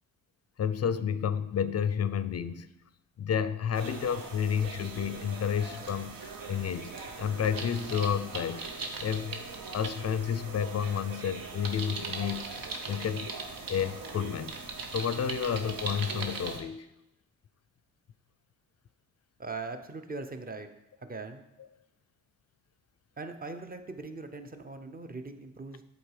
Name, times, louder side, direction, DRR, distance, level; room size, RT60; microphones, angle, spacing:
voice 1, 0.6-2.7 3.2-6.9 7.2-8.7 9.0-9.4 9.7-12.5 12.9-13.3 13.7-14.6 14.9-16.9, left 8 dB, 45° left, 13 dB, 0.5 m, -30 dB
sound 1, 3.7-16.6, right 4 dB, 75° right, 0.9 m, -40 dB
voice 2, 19.4-20.7 21.0-21.4 23.2-25.8, right 3 dB, 25° right, 7 dB, 0.8 m, -40 dB
8.0 x 3.9 x 4.9 m, 0.89 s
cardioid pair, 55°, 35 cm